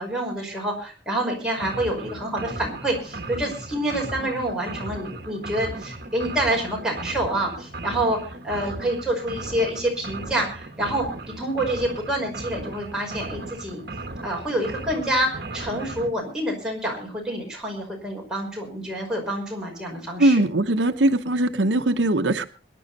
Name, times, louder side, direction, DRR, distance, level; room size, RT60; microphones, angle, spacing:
voice 1, 0.0-8.2 8.4-11.1 11.4-13.8 14.2-20.4, right 1 dB, 5° right, -2 dB, 5.4 m, -27 dB
sound 1, 1.6-16.1, right 2 dB, 55° right, 1.6 m, -36 dB
voice 2, 20.2-22.4, right 1 dB, 90° right, 9 dB, 0.9 m, -20 dB
22.5 x 11.0 x 4.2 m, 0.37 s
head